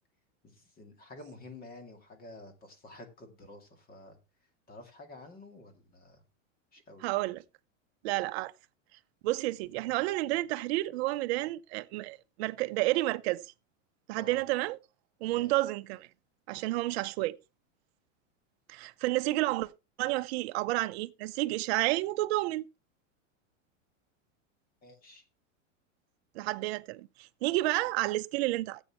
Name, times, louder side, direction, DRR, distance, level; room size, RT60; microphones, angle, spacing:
voice 1, 0.4-4.2 4.7-6.2 6.7-7.1 14.1-14.4 15.2-15.5 24.8-25.2, left 2 dB, 25° left, 2.2 m, -50 dB
voice 2, 7.0-7.4 8.0-8.5 9.2-13.4 14.1-14.8 15.2-16.1 16.5-17.4 18.7-19.7 20.0-22.6 26.3-28.8, right 18 dB, 55° right, 0.7 m, -30 dB
15.0 x 8.2 x 3.0 m
supercardioid pair, 145°, 39 cm